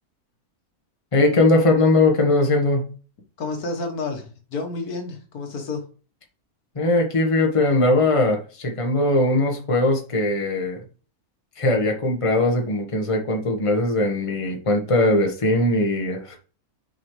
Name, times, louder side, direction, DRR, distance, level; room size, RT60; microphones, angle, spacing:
voice 1, 1.1-2.8 6.7-10.8 11.6-16.4, left 2 dB, 25° left, 2 dB, 1.2 m, -20 dB
voice 2, 3.4-5.8, left 3 dB, 85° left, 4 dB, 1.8 m, -30 dB
6.6 x 5.2 x 3.1 m, 0.37 s
omnidirectional pair, 1.6 m